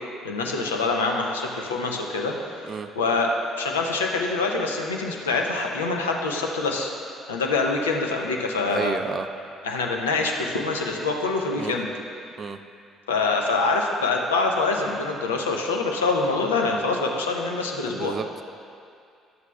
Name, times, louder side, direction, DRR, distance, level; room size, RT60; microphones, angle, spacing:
voice 1, 0.2-3.3 3.6-6.9 7.3-9.0 9.6-11.9 13.1-18.2, left 3 dB, 85° left, 1 dB, 0.6 m, -25 dB
voice 2, 8.7-9.3 11.6-11.7 12.4-12.6 17.8-18.4, right 6 dB, 40° right, 9 dB, 0.4 m, -31 dB
11.0 x 8.0 x 2.3 m, 2.4 s
hypercardioid pair, 50°, 0 cm